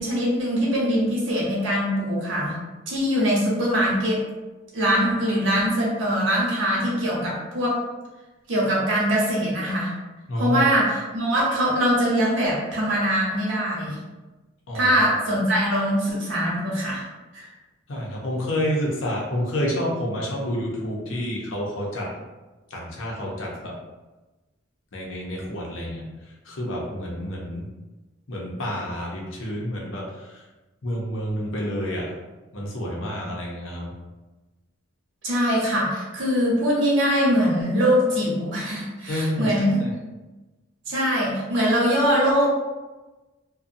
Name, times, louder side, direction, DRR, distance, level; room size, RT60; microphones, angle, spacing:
voice 1, 0.0-2.6 2.9-4.2 4.7-7.8 8.5-9.9 10.4-14.0 14.7-17.0 17.3-17.5 35.2-39.8 40.9-42.5, equal, 75° right, -5 dB, 0.9 m, -22 dB
voice 2, 10.3-10.6 14.7-15.0 17.9-22.1 22.7-23.7 24.9-27.7 28.3-30.4 30.8-32.1 32.5-33.9 39.1-39.9, equal, 75° left, -2 dB, 0.7 m, -29 dB
2.6 x 2.2 x 2.6 m, 1.1 s
head